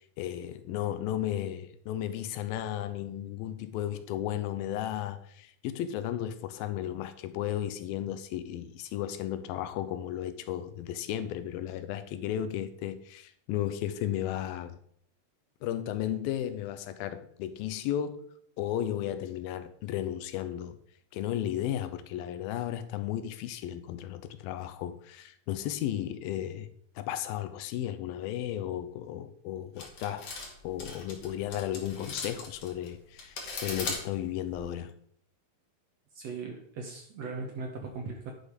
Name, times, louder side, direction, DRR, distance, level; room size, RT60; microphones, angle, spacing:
voice 1, 0.2-14.8 15.6-18.3 18.6-20.8 21.1-30.3 30.6-35.0, left 11 dB, 85° left, 2.6 m, -34 dB
sound 1, 29.8-34.7, left 3 dB, 50° left, 2.7 m, -39 dB
voice 2, 36.2-38.3, right 4 dB, 65° right, 1.8 m, -38 dB
10.0 x 6.4 x 5.2 m
omnidirectional pair, 4.2 m